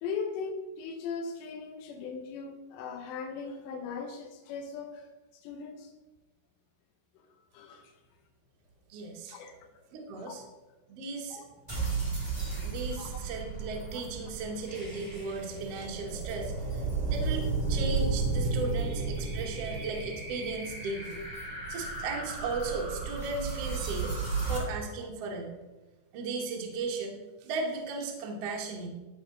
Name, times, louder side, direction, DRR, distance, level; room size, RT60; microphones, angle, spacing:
voice 1, 0.0-5.1 5.3-5.9 7.5-7.9 9.3-9.5 10.3-10.4 11.3-11.5 13.0-13.3, left 5 dB, 90° left, 3 dB, 3.1 m, -39 dB
voice 2, 8.9-9.4 9.9-10.4 10.9-11.4 12.6-16.8 17.1-21.2 21.7-25.6 26.1-28.9, right 3 dB, 80° right, 0 dB, 1.4 m, -36 dB
sound 1, 11.7-24.6, right 4 dB, 10° right, 2.5 m, -33 dB
14.0 x 4.8 x 3.9 m, 1.1 s
omnidirectional pair, 4.9 m